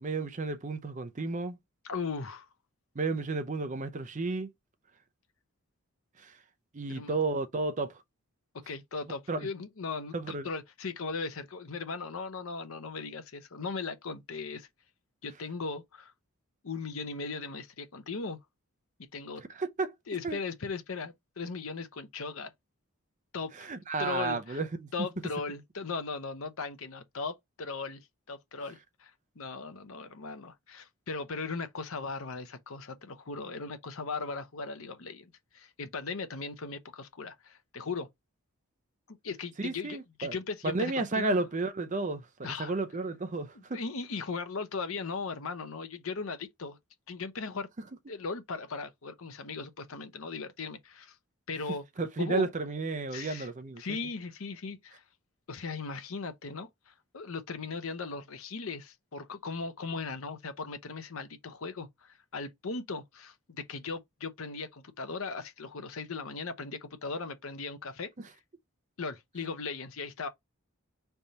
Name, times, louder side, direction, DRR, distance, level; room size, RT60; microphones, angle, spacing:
voice 1, 0.0-1.6 2.9-4.5 6.2-6.3 6.7-7.9 9.3-9.5 10.1-10.5 19.4-19.9 20.2-20.4 23.5-24.9 39.6-40.3 40.6-43.8 52.0-53.8, right 3 dB, 35° right, 0.6 m, -32 dB
voice 2, 1.8-2.5 6.9-7.2 8.7-14.7 15.2-16.1 16.6-18.4 19.1-19.4 20.1-22.5 23.3-23.7 24.0-24.6 24.9-29.1 29.4-38.1 39.1-41.4 42.4-42.7 43.7-46.8 47.1-47.7 48.1-51.1 51.5-51.8 52.2-52.5 53.1-53.5 53.8-55.0 55.5-68.1 69.0-70.3, left 4 dB, 75° left, 0.8 m, -38 dB
5.2 x 3.4 x 2.8 m
head